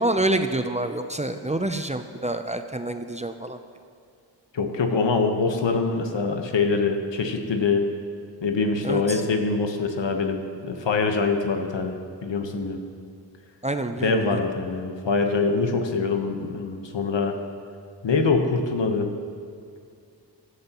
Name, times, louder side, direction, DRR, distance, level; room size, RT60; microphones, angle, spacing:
voice 1, 0.0-3.6 8.8-9.2 13.6-14.4, right 2 dB, 15° right, 7 dB, 0.5 m, -27 dB
voice 2, 4.5-7.9 8.4-11.9 12.2-12.8 14.0-17.4 18.0-19.1, left 4 dB, 75° left, 4 dB, 1.3 m, -24 dB
16.0 x 11.5 x 3.0 m, 2.3 s
cardioid pair, 55°, 44 cm